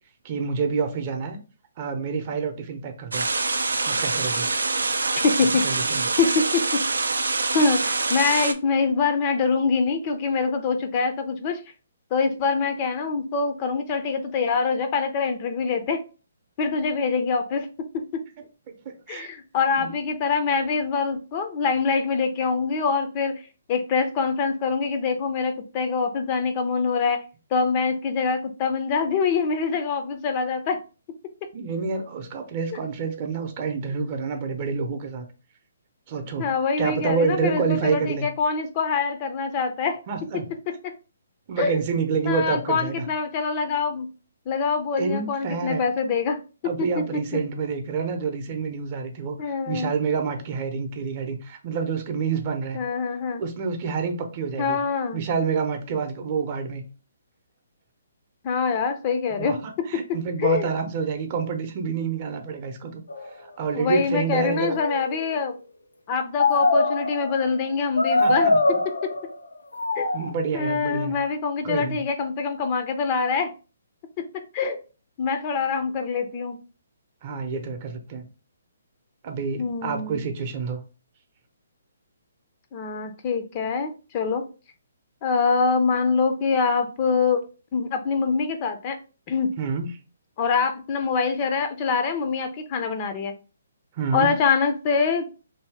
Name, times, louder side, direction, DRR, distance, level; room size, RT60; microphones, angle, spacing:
voice 1, 0.2-1.4 1.8-3.3 3.8-4.5 5.6-6.1 18.7-19.3 19.8-19.9 31.5-35.2 36.1-36.5 36.8-38.3 40.1-40.5 41.5-43.0 45.0-45.8 46.6-52.8 53.4-54.8 55.1-56.8 59.4-63.0 63.6-64.8 68.2-68.6 70.1-71.2 71.6-72.0 77.2-78.2 79.2-80.8 89.6-89.9 94.0-94.3, right 5 dB, 40° right, 4 dB, 0.6 m, -28 dB
sound 1, 3.1-8.5, right 3 dB, 85° right, 0.3 m, -25 dB
voice 2, 5.2-5.6 6.2-6.8 7.5-11.6 12.1-16.0 16.6-18.2 19.1-23.4 23.7-27.2 27.5-30.8 36.4-40.0 41.6-41.8 42.2-44.1 44.5-46.4 46.8-47.2 49.4-49.9 52.7-53.4 54.6-55.2 58.4-59.6 60.4-60.7 63.7-65.5 66.1-68.5 70.0-70.1 70.5-73.5 74.5-74.8 75.2-76.6 79.6-80.2 82.7-84.4 85.2-87.4 87.7-89.0 89.3-89.5 90.4-93.3 94.1-95.2, left 5 dB, 35° left, 7 dB, 0.5 m, -24 dB
sound 2, 63.1-63.3 64.2-65.4 66.4-67.4 68.0-69.3 69.7-70.3, left 2 dB, 85° left, 0.5 m, -23 dB
2.7 x 2.7 x 3.3 m, 0.34 s
hypercardioid pair, 140°, 0 cm